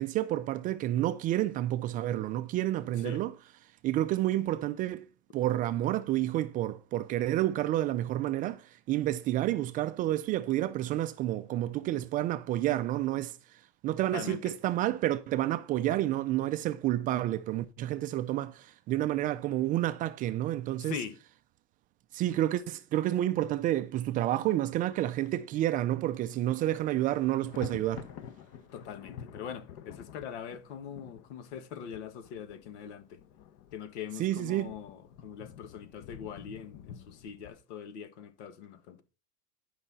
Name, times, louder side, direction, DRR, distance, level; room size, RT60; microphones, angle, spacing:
voice 1, 0.0-3.3 3.8-5.1 5.3-8.6 8.9-13.4 13.8-21.0 22.1-28.1 34.2-34.7, right 14 dB, 25° right, 0.3 m, -29 dB
voice 2, 14.0-14.5 20.8-21.2 28.7-33.2 33.7-39.0, left 7 dB, 85° left, 1.6 m, -42 dB
Thunder, 26.0-26.4 26.7-37.5, left 9 dB, 45° left, 0.9 m, -49 dB
11.0 x 5.7 x 4.0 m
supercardioid pair, 155°, 34 cm